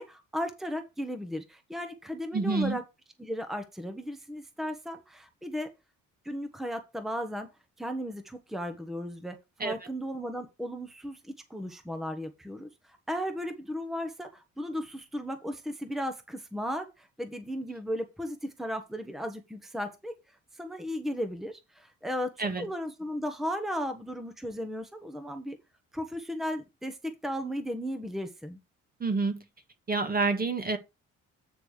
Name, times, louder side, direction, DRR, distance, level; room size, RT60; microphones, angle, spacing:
voice 1, 0.0-2.8 3.2-5.7 6.2-7.5 7.8-20.1 20.6-25.6 25.9-28.6, equal, ahead, 1.1 m, -35 dB
voice 2, 2.3-2.8 9.6-9.7 22.4-22.7 29.0-29.4 29.9-30.8, right 3 dB, 30° right, 1.5 m, -28 dB
8.8 x 3.3 x 6.5 m
cardioid pair, 90°, 30 cm